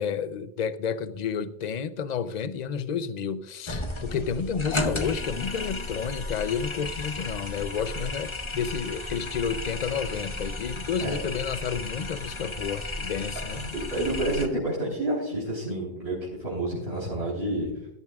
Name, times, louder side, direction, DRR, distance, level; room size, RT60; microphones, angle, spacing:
voice 1, 0.0-13.7, left 7 dB, 45° left, 0.6 m, -31 dB
sound 1, 3.7-14.5, left 2 dB, 30° left, 1.0 m, -34 dB
voice 2, 13.5-17.7, right 1 dB, 65° right, 4.1 m, -29 dB
17.0 x 12.0 x 2.4 m
omnidirectional pair, 1.2 m